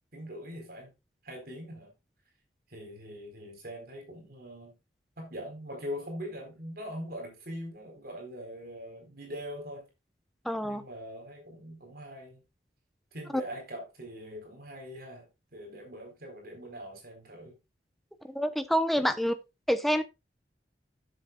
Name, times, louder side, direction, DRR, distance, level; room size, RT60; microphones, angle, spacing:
voice 1, 0.1-0.9 1.2-1.9 2.7-4.7 5.2-9.8 10.6-12.4 13.1-17.6, equal, 55° right, 4.2 m, -42 dB
voice 2, 10.4-10.8 18.3-19.3 19.7-20.0, equal, ahead, 0.9 m, -27 dB
14.0 x 7.4 x 2.4 m
head